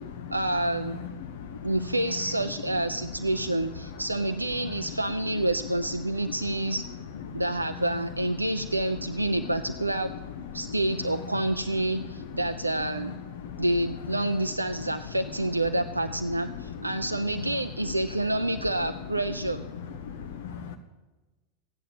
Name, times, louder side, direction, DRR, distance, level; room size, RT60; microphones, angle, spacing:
voice 1, 0.3-1.0 1.6-6.8 7.3-10.1 10.5-13.2 13.6-19.6, right 1 dB, 85° right, 8 dB, 0.5 m, -28 dB
voice 2, 1.2-1.7 7.3-7.4 9.4-9.5 10.6-10.8 13.4-13.6 16.5-16.6 20.0-20.8, left 7 dB, 60° left, 8 dB, 0.9 m, -39 dB
14.5 x 9.3 x 7.2 m, 1.2 s
figure-of-eight pair, 90°, 0 cm